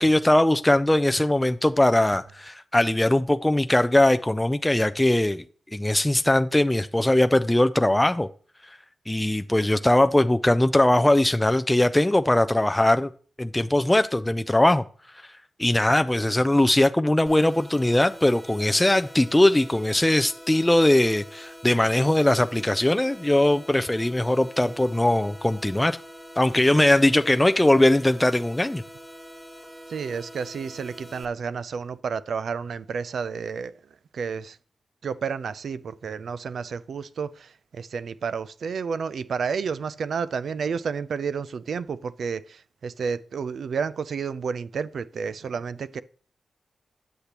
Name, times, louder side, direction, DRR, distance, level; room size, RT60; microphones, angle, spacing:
voice 1, 0.0-5.4 5.7-8.3 9.1-13.1 13.4-14.8 15.6-26.0 26.4-28.8, left 1 dB, 15° left, 0.3 m, -20 dB
sound 1, 17.3-31.3, equal, ahead, 1.1 m, -45 dB
voice 2, 29.9-33.7 34.1-34.6 35.0-46.0, right 6 dB, 80° right, 0.3 m, -31 dB
8.1 x 6.6 x 2.9 m
cardioid pair, 65°, 0 cm